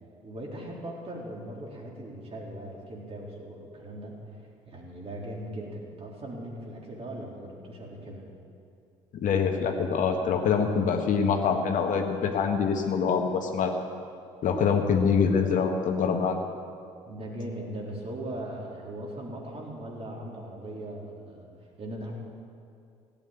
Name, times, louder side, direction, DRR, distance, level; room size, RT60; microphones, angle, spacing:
voice 1, 0.2-4.2 4.7-8.2 17.1-21.5 21.8-22.1, right 1 dB, 40° right, -2 dB, 3.8 m, -39 dB
voice 2, 9.1-13.7 14.4-16.4, left 6 dB, 55° left, 4 dB, 1.5 m, -25 dB
16.0 x 8.8 x 8.8 m, 2.4 s
hypercardioid pair, 50°, 16 cm